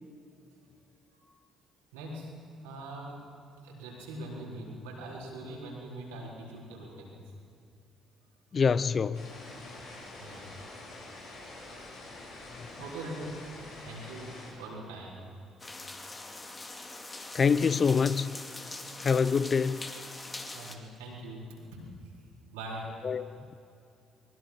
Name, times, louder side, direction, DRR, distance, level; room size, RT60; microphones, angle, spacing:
voice 1, 1.9-3.2 3.6-7.2 10.2-10.6 12.8-13.5 13.8-15.2 17.1-17.2 19.0-19.1 20.5-22.1 22.5-23.0, right 1 dB, 75° right, 4.3 m, -42 dB
voice 2, 8.5-9.2 17.3-18.4 19.0-19.8 23.0-23.4, left 5 dB, 40° left, 0.6 m, -25 dB
sound 1, 9.1-14.5, left 2 dB, 75° left, 6.4 m, -46 dB
sound 2, 15.6-20.7, left 2 dB, 25° left, 2.4 m, -43 dB
22.5 x 21.0 x 5.9 m
figure-of-eight pair, 50°, 0 cm